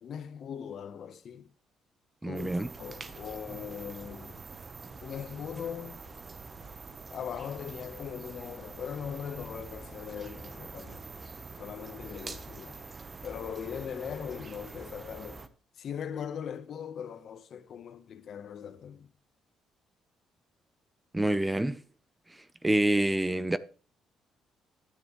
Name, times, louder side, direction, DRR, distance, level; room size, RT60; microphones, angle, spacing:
voice 1, 0.0-1.5 2.2-2.5 2.8-4.4 5.0-6.0 7.1-11.1 11.6-12.8 13.2-15.4 15.8-19.1, left 8 dB, 55° left, 0.9 m, -40 dB
voice 2, 2.2-2.7 21.1-21.8 22.6-23.6, right 1 dB, 10° right, 0.5 m, -26 dB
sound 1, 2.3-15.5, right 3 dB, 30° right, 0.9 m, -45 dB
12.0 x 9.3 x 3.0 m
cardioid pair, 110°, 0 cm